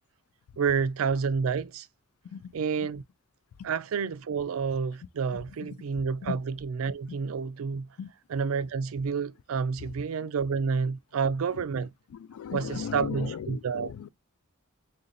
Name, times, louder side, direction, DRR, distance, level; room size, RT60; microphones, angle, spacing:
voice 1, 0.6-1.9 2.5-3.0 3.6-7.9 8.3-11.9 12.5-13.9, right 5 dB, 70° right, 0.4 m, -29 dB
voice 2, 5.3-5.9 6.2-6.4 8.0-8.1 9.8-9.9 10.2-10.3 11.5-11.6 12.1-14.1, left 7 dB, 85° left, 0.3 m, -37 dB
3.8 x 2.6 x 4.0 m
head